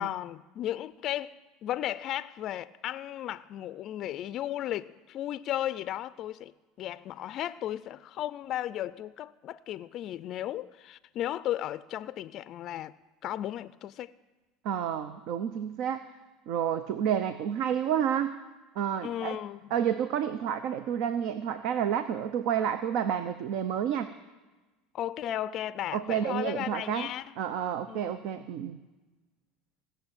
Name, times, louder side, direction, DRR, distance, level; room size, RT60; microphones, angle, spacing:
voice 1, 0.0-1.3 1.6-6.5 6.8-12.9 13.2-14.1 19.0-19.7 24.9-27.2 27.9-28.5, left 12 dB, 50° left, 0.4 m, -35 dB
voice 2, 14.6-16.1 16.5-18.3 18.8-19.4 19.7-24.1 25.9-27.1 27.4-28.8, right 9 dB, 65° right, 0.7 m, -30 dB
17.5 x 6.8 x 8.9 m
supercardioid pair, 105°, 0 cm